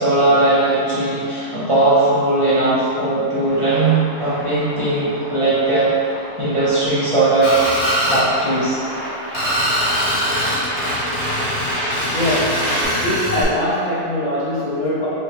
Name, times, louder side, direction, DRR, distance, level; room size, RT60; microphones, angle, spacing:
voice 1, 0.0-5.9 6.4-7.5 8.1-8.8 11.8-11.9, right 2 dB, 30° right, -12 dB, 0.6 m, -18 dB
sound 1, 3.5-12.8, right 1 dB, 60° right, 1.3 m, -29 dB
Screech, 7.4-8.2 9.3-13.4, equal, 35° left, 1.2 m, -22 dB
voice 2, 12.1-15.1, left 1 dB, 75° left, -9 dB, 0.4 m, -22 dB
5.6 x 2.2 x 2.9 m, 2.5 s
omnidirectional pair, 1.6 m